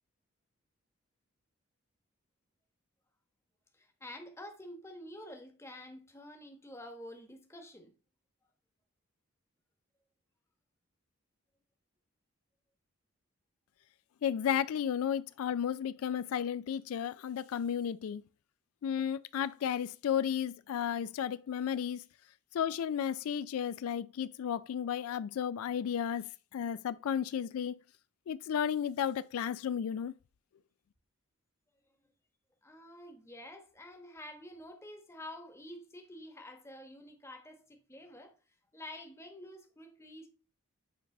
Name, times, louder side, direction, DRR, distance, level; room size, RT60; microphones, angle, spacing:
voice 1, 3.8-7.9 32.6-38.3 38.7-40.3, left 1 dB, 10° left, 1.1 m, -48 dB
voice 2, 14.2-18.2 18.8-22.0 22.5-27.8 28.3-30.1, left 8 dB, 75° left, 0.3 m, -33 dB
8.7 x 3.3 x 5.3 m
head